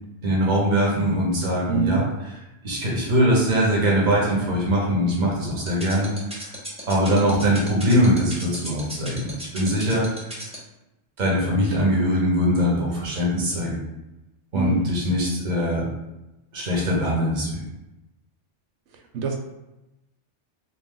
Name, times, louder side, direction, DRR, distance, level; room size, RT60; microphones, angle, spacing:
voice 1, 0.2-2.4 2.6-6.5 6.9-10.3 11.2-13.8 14.5-15.9 16.5-17.6, equal, 45° right, -4 dB, 1.0 m, -22 dB
voice 2, 1.7-2.0 14.5-14.8 19.1-19.4, right 5 dB, 85° right, 3 dB, 0.9 m, -24 dB
sound 1, 5.7-10.6, equal, 5° right, 0.7 m, -35 dB
3.2 x 2.4 x 3.7 m, 0.95 s
omnidirectional pair, 1.2 m